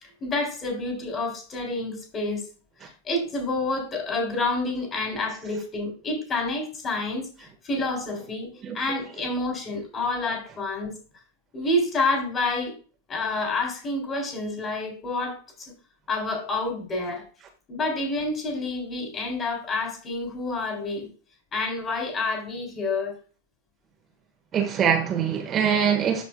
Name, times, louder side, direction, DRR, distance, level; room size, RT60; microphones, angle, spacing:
voice 1, 0.0-2.4 2.8-10.9 11.5-12.7 13.1-15.7 16.1-17.3 17.7-21.1 21.5-23.1, left 2 dB, 25° left, 3.5 m, -28 dB
voice 2, 8.6-9.0 24.5-26.2, right 8 dB, 25° right, 1.5 m, -23 dB
13.0 x 5.1 x 2.3 m
figure-of-eight pair, 90°, 0 cm